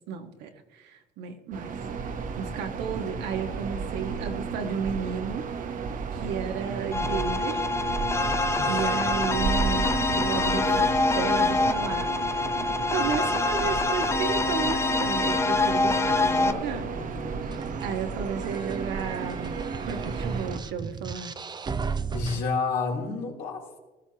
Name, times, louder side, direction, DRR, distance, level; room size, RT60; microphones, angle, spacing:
voice 1, 0.1-1.7 2.0-5.4 6.1-7.7 8.7-12.4 12.9-16.8 17.8-21.3, right 6 dB, 85° right, 4 dB, 1.6 m, -33 dB
sound 1, 1.5-20.6, right 5 dB, 50° right, 1.1 m, -33 dB
sound 2, 6.9-16.5, left 3 dB, 15° left, 0.7 m, -25 dB
voice 2, 10.2-11.2 16.3-17.8 22.1-23.8, left 4 dB, 75° left, -2 dB, 3.4 m, -33 dB
sound 3, 17.4-22.4, right 5 dB, 25° right, 0.6 m, -35 dB
19.0 x 14.0 x 2.9 m, 1.2 s
cardioid pair, 110°, 17 cm